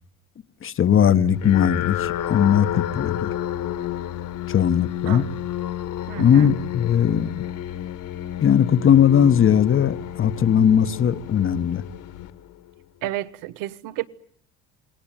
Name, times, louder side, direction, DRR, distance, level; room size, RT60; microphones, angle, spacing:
voice 1, 0.6-3.3 4.5-5.3 6.2-7.3 8.4-11.8, left 8 dB, 40° left, 1.2 m, -19 dB
sound 1, 1.3-12.8, left 11 dB, 60° left, 2.1 m, -31 dB
voice 2, 6.1-6.5 13.0-14.1, right 14 dB, 70° right, 1.2 m, -31 dB
28.0 x 19.0 x 9.0 m
hypercardioid pair, 75°, 34 cm